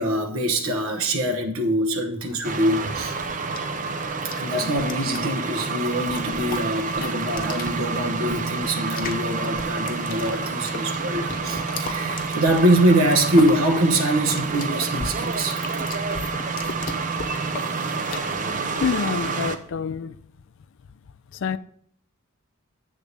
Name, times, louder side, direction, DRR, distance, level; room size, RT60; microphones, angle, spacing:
voice 1, 0.0-3.6 4.2-15.9, right 1 dB, 65° right, 0.9 m, -24 dB
sound 1, 2.3-19.3, left 3 dB, 40° left, 0.9 m, -38 dB
sound 2, 2.4-19.6, right 4 dB, 35° right, 0.6 m, -28 dB
voice 2, 18.8-20.2 21.3-21.6, left 6 dB, 60° left, 0.4 m, -27 dB
8.1 x 3.6 x 6.6 m
head